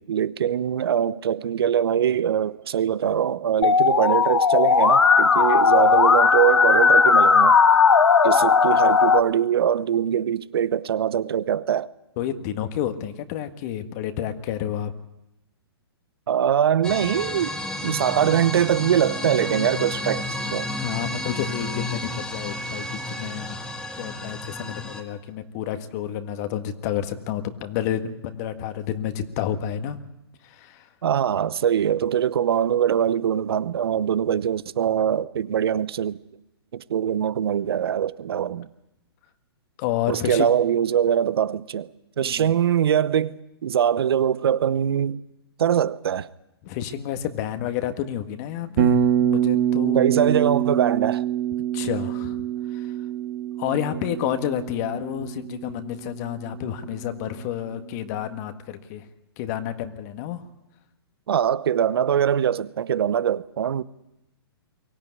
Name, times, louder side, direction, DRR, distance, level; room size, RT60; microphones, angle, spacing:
voice 1, 0.0-7.6 8.2-11.9 16.3-17.5 17.8-20.7 31.0-36.2 36.7-38.7 40.1-41.9 42.2-45.2 45.6-46.3 49.9-51.2 61.3-63.8, right 9 dB, 65° right, 0.9 m, -22 dB
Musical instrument, 3.6-9.2, left 5 dB, 90° left, 1.4 m, -17 dB
voice 2, 12.2-14.9 20.7-23.6 23.9-30.0 30.4-30.9 39.8-40.5 42.2-42.5 46.6-50.3 51.7-52.4 52.7-52.9 53.6-59.0 59.4-60.4, left 10 dB, 40° left, 1.7 m, -30 dB
sound 1, 16.8-25.0, left 1 dB, 5° left, 1.9 m, -31 dB
Bass guitar, 48.8-56.8, right 10 dB, 45° right, 1.9 m, -25 dB
23.0 x 16.5 x 9.6 m
hypercardioid pair, 130°, 13 cm